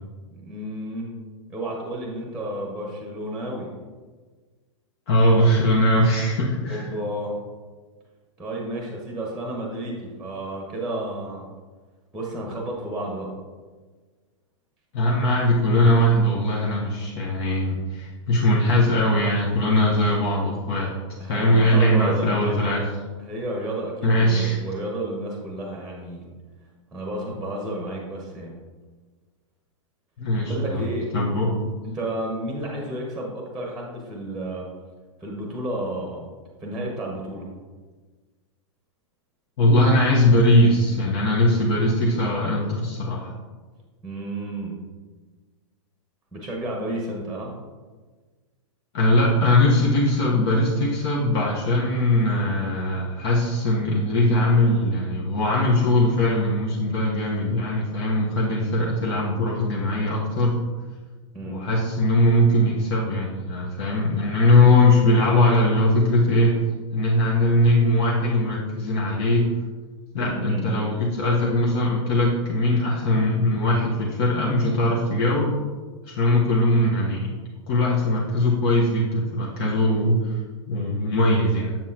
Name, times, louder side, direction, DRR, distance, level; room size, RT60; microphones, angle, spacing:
voice 1, 0.4-1.1 1.5-3.7 6.7-7.4 8.4-11.5 12.1-13.3 21.2-22.6 23.2-26.3 26.9-28.5 30.4-31.1 31.8-34.7 35.2-36.3 36.6-37.5 44.0-44.8 46.3-47.5 61.3-61.7 70.2-70.9, right 1 dB, ahead, -1 dB, 1.1 m, -31 dB
voice 2, 5.1-6.8 14.9-20.9 21.3-22.9 24.0-24.6 30.2-30.8 31.1-31.5 39.6-43.3 48.9-60.6 61.4-66.5 66.9-69.5 70.1-75.6 76.1-77.3 77.7-80.4 80.7-81.8, left 1 dB, 50° left, -4 dB, 1.2 m, -20 dB
7.3 x 7.2 x 2.9 m, 1.4 s
hypercardioid pair, 155°, 17 cm